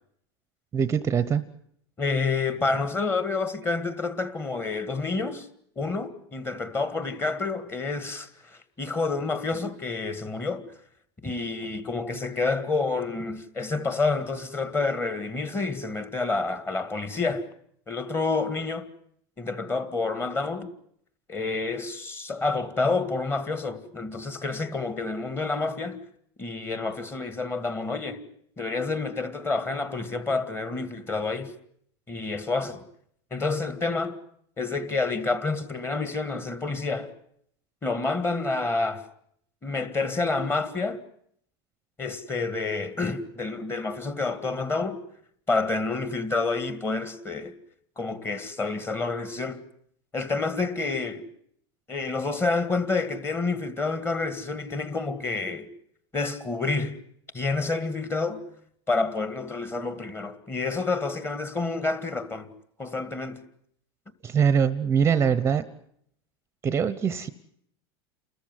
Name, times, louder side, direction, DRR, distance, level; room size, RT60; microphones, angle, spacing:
voice 1, 0.7-1.4 64.2-65.7 66.6-67.3, right 7 dB, 20° right, 0.9 m, -23 dB
voice 2, 2.0-5.5 5.8-10.6 11.2-17.5 17.9-18.9 19.4-20.7 21.3-26.0 26.4-28.2 28.6-31.5 32.1-32.8 33.3-34.2 34.6-37.1 37.8-39.0 39.6-41.0 42.0-45.0 45.5-47.5 48.0-49.6 50.1-51.2 51.9-55.7 56.1-57.0 57.3-58.4 58.9-62.5 62.8-63.4, left 3 dB, 15° left, 2.0 m, -28 dB
29.5 x 14.0 x 9.5 m
supercardioid pair, 135°, 13 cm